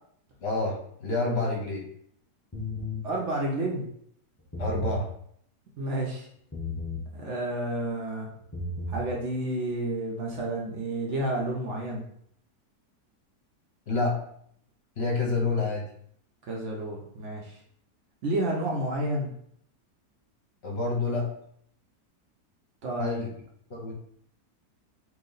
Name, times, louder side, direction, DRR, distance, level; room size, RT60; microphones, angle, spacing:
voice 1, 0.4-1.8 4.6-5.1 13.9-14.2 15.0-15.9 20.6-21.3 23.0-23.3 23.7-23.9, left 3 dB, 50° left, -1 dB, 0.9 m, -28 dB
sound 1, 2.5-3.0 4.4-5.0 6.5-7.1 8.4-9.0, left 1 dB, 15° left, 0.6 m, -33 dB
voice 2, 3.0-3.8 5.8-6.3 7.1-8.3 8.9-12.0 16.5-17.6 18.2-19.3 22.8-23.2, right 1 dB, 60° right, -1 dB, 0.8 m, -30 dB
3.0 x 2.8 x 3.9 m, 0.67 s
omnidirectional pair, 1.7 m